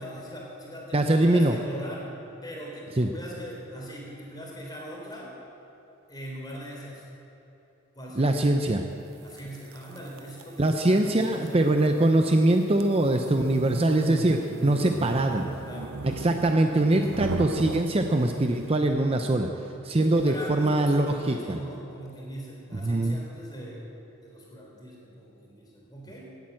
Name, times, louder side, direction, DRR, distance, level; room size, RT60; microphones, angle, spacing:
voice 1, 0.0-2.1 2.4-5.3 6.1-7.0 8.0-8.4 9.2-11.8 14.6-16.8 19.0-19.3 20.0-23.9 24.2-26.3, equal, 20° left, -3 dB, 3.6 m, -41 dB
voice 2, 0.9-1.5 3.0-3.1 8.2-8.8 10.6-15.4 16.0-19.5 19.8-21.6 22.7-23.2, right 1 dB, 30° right, 5 dB, 0.6 m, -23 dB
sound 1, 9.4-18.7, right 4 dB, 85° right, 0.6 m, -37 dB
18.0 x 8.8 x 7.6 m, 2.9 s
head